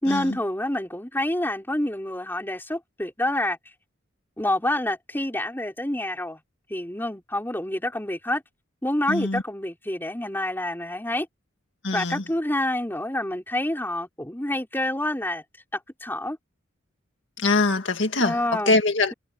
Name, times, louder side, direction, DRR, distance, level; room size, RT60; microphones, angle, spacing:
voice 1, 0.0-3.6 4.4-6.4 6.7-8.4 8.8-11.3 11.9-15.4 15.7-16.4 18.2-18.8, left 1 dB, 10° left, 4.4 m, -27 dB
voice 2, 9.1-9.4 11.8-12.2 17.4-18.4 18.7-19.1, left 3 dB, 65° left, 2.0 m, -23 dB
head